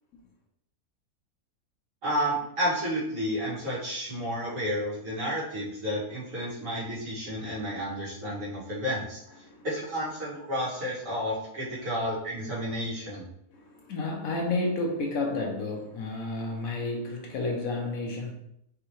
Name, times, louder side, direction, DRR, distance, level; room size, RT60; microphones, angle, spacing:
voice 1, 2.0-9.2 9.6-13.2, equal, 60° right, -8 dB, 2.4 m, -31 dB
voice 2, 13.5-18.3, left 2 dB, 70° left, 1 dB, 1.2 m, -31 dB
4.8 x 3.3 x 3.1 m, 0.74 s
omnidirectional pair, 1.6 m